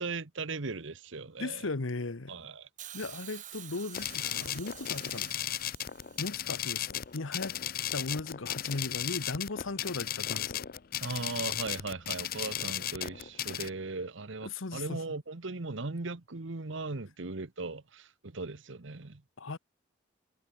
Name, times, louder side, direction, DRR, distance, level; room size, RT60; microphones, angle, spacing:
voice 1, 0.0-1.7 2.3-2.7 11.0-19.2, right 3 dB, 65° right, 1.1 m, -38 dB
voice 2, 1.4-2.3 2.9-5.3 6.2-7.6 7.9-10.7 14.4-15.0 19.4-19.6, left 3 dB, 80° left, 1.1 m, -37 dB
Hiss, 2.8-6.9 7.9-8.0, right 11 dB, 40° right, 4.3 m, -48 dB
sound 1, 3.9-13.7, left 11 dB, 45° left, 0.6 m, -35 dB
head